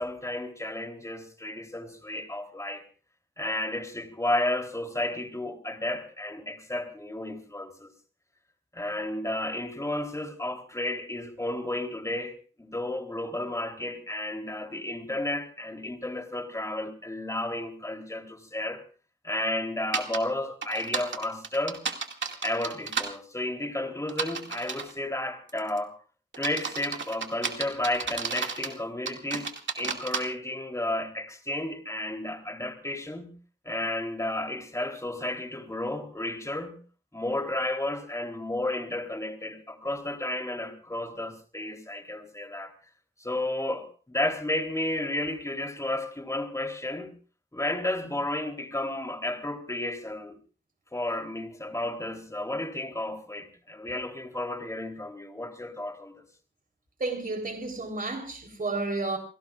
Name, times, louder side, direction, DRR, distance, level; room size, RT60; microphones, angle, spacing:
voice 1, 0.0-2.8 3.4-7.9 8.7-18.8 19.2-21.8 22.4-25.9 26.4-33.3 33.6-36.8 37.1-42.7 43.2-47.1 47.5-50.4 50.9-56.2, left 1 dB, 15° left, 3.5 m, -32 dB
sound 1, 19.9-20.2 20.6-23.1 24.1-24.9 25.5-25.8 26.3-28.7 29.1-30.2, right 5 dB, 90° right, 2.2 m, -32 dB
voice 2, 57.0-59.2, right 3 dB, 50° right, 3.8 m, -31 dB
29.0 x 17.5 x 2.5 m
cardioid pair, 60°, 19 cm